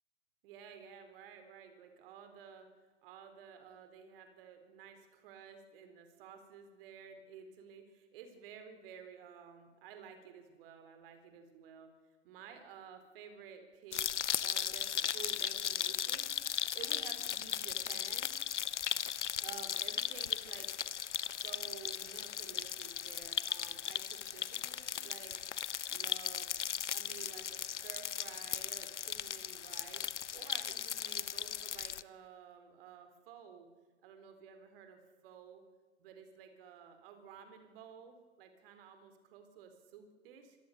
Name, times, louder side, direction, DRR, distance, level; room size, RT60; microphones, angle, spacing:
voice 1, 0.4-2.7 3.0-11.9 12.2-14.0 14.4-16.3 16.7-18.4 19.4-20.7 21.3-25.4 25.9-26.5 26.8-30.0 30.3-33.7 34.0-35.6 36.0-40.6, right 7 dB, 50° right, 8 dB, 4.1 m, -53 dB
sound 1, 13.9-32.0, left 9 dB, 75° left, 0.8 m, -37 dB
25.5 x 18.5 x 6.8 m, 1.4 s
figure-of-eight pair, 100°, 36 cm